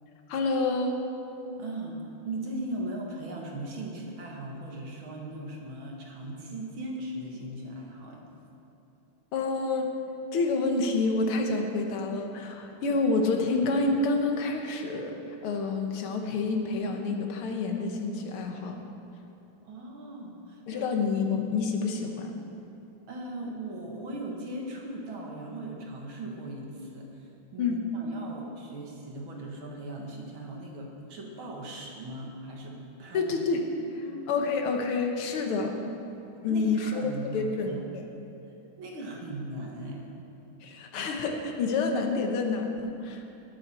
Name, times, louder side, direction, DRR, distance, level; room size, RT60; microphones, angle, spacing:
voice 1, 0.3-1.0 9.3-9.9 10.3-15.1 15.4-18.8 20.7-22.3 27.6-27.8 33.1-33.6 34.3-35.8 36.4-38.0 40.6-43.2, left 3 dB, 80° left, 3 dB, 2.0 m, -28 dB
voice 2, 1.6-8.2 19.6-20.9 23.1-33.3 34.0-34.2 36.5-37.8 38.8-40.2, right 1 dB, 65° right, -1 dB, 2.4 m, -39 dB
18.5 x 8.5 x 4.4 m, 2.8 s
omnidirectional pair, 2.4 m